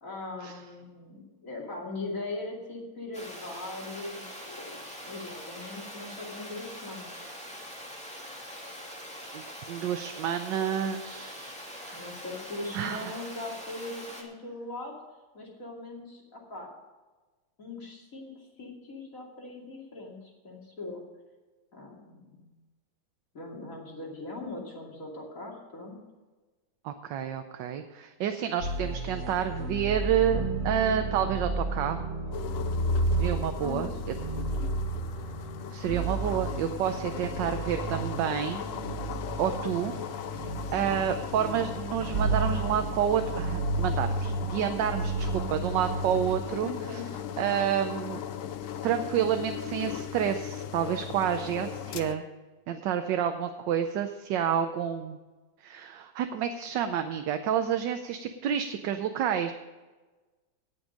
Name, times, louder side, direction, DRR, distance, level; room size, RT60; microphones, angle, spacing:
voice 1, 0.0-4.8 5.0-7.3 11.9-14.9 15.3-16.7 17.6-21.0 21.7-22.5 23.3-26.0 33.6-34.0 46.6-47.1, left 2 dB, 40° left, -2 dB, 2.9 m, -40 dB
Water, 3.1-14.2, equal, 5° left, 1.8 m, -43 dB
voice 2, 9.7-12.0 12.7-13.2 26.8-32.0 33.2-33.9 35.7-38.7 39.4-39.9 40.4-40.5 40.7-46.7 47.4-48.2 48.8-52.2 52.7-55.2 55.6-59.5, right 9 dB, 70° right, 7 dB, 1.3 m, -29 dB
sound 1, 28.6-46.4, right 2 dB, 35° right, 2.0 m, -32 dB
sound 2, 32.3-52.2, left 8 dB, 80° left, 0.7 m, -38 dB
18.0 x 6.3 x 5.2 m, 1.2 s
omnidirectional pair, 2.1 m